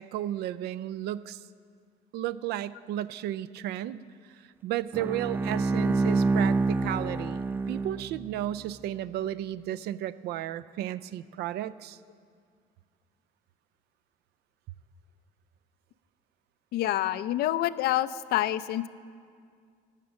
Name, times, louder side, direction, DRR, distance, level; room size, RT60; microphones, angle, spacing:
voice 1, 0.0-1.4 2.1-4.0 4.6-12.0, right 12 dB, 75° right, 16 dB, 0.4 m, -33 dB
Bowed string instrument, 4.9-8.5, right 3 dB, 10° right, 0.3 m, -27 dB
voice 2, 16.7-18.9, left 13 dB, 70° left, 15 dB, 0.4 m, -27 dB
13.0 x 8.2 x 6.3 m, 2.1 s
cardioid pair, 110°, 17 cm